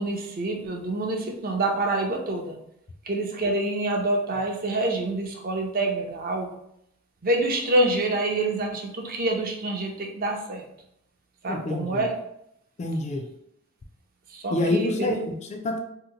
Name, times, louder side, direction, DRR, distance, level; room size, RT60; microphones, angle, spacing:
voice 1, 0.0-2.6 3.0-6.5 7.2-10.6 11.4-12.1 14.3-15.2, right 2 dB, 45° right, 2 dB, 0.6 m, -26 dB
voice 2, 11.5-12.0 12.8-13.2 14.5-15.8, left 2 dB, 30° left, 3 dB, 0.3 m, -27 dB
2.8 x 2.1 x 3.7 m, 0.76 s
head